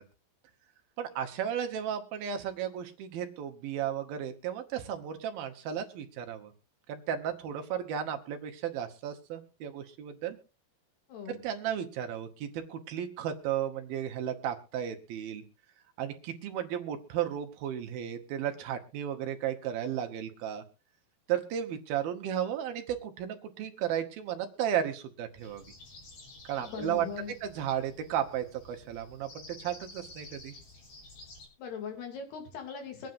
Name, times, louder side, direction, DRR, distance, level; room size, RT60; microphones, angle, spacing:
voice 1, 1.0-6.5 6.9-10.4 11.4-15.4 16.0-20.6 21.3-25.6 26.4-27.1 27.4-30.6, right 9 dB, 75° right, 5 dB, 2.8 m, -34 dB
voice 2, 11.1-11.4 26.6-27.3 31.6-33.1, left 6 dB, 80° left, 3 dB, 4.6 m, -40 dB
sound 1, 25.4-31.5, left 2 dB, 65° left, 5.8 m, -51 dB
24.0 x 9.2 x 2.5 m, 0.31 s
omnidirectional pair, 4.5 m